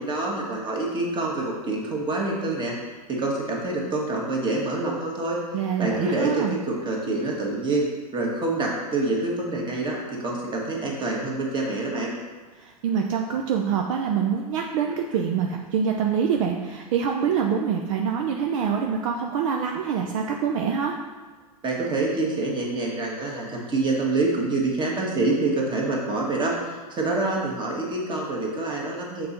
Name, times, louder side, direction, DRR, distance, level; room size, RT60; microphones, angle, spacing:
voice 1, 0.0-2.7 3.1-5.4 5.8-7.9 8.1-12.1 21.6-29.3, right 2 dB, 25° right, -2 dB, 1.6 m, -26 dB
voice 2, 5.5-6.5 12.6-21.0, right 7 dB, 55° right, 2 dB, 0.6 m, -25 dB
6.5 x 3.9 x 4.2 m, 1.3 s
hypercardioid pair, 100°, 20 cm